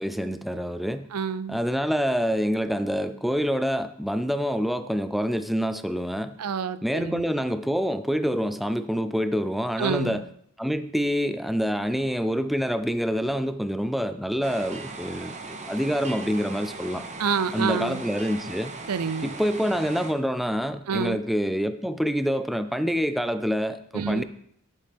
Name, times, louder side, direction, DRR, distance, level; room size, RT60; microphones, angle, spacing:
voice 1, 0.0-1.1 1.5-6.4 6.8-10.3 10.6-17.1 17.5-18.7 19.2-24.2, equal, ahead, 10 dB, 0.3 m, -26 dB
voice 2, 1.1-1.6 6.4-7.3 9.8-10.2 17.2-18.0 18.9-19.3 20.9-21.2 23.9-24.2, right 6 dB, 85° right, 14 dB, 0.6 m, -28 dB
sound 1, 14.4-20.1, right 3 dB, 30° right, 0.8 m, -38 dB
10.5 x 8.7 x 3.5 m, 0.69 s
head